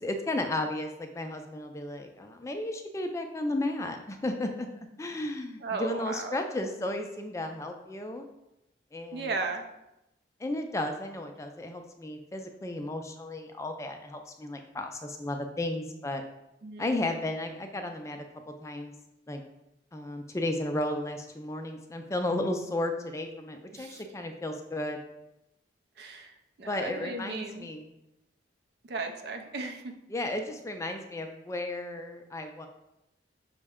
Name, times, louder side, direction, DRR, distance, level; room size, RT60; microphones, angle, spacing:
voice 1, 0.0-4.7 5.0-8.3 8.9-9.3 10.4-16.2 16.8-18.2 18.6-18.9 19.3-19.4 19.9-25.0 26.7-27.9 30.1-32.7, left 1 dB, 15° left, 5 dB, 0.3 m, -34 dB
voice 2, 5.6-6.5 9.1-9.6 16.6-17.1 23.7-24.0 26.0-27.7 28.8-29.8, right 3 dB, 60° right, 6 dB, 0.4 m, -36 dB
5.8 x 2.1 x 3.5 m, 0.89 s
head